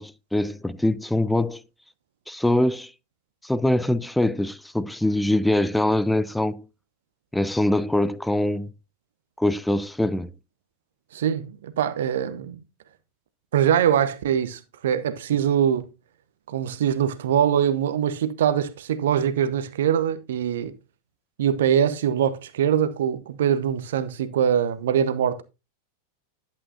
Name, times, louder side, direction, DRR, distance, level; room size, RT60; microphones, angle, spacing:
voice 1, 0.0-1.6 2.3-2.9 3.4-6.6 7.3-8.7 9.4-10.3, left 1 dB, 5° left, 0.4 m, -23 dB
voice 2, 11.1-12.6 13.5-15.8 16.5-20.7 21.4-25.4, right 9 dB, 60° right, 0.8 m, -23 dB
11.0 x 8.4 x 2.7 m
figure-of-eight pair, 90°, 0 cm